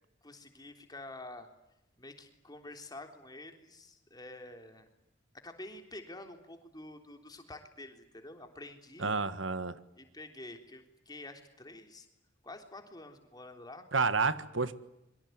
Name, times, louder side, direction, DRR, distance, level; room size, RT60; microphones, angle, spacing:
voice 1, 0.2-1.5 2.0-4.9 5.4-9.1 10.0-12.1 12.4-13.9, left 2 dB, 20° left, 5 dB, 3.6 m, -48 dB
voice 2, 9.0-9.8 13.9-14.7, right 4 dB, 80° right, 13 dB, 1.6 m, -30 dB
26.0 x 24.0 x 9.5 m, 0.86 s
head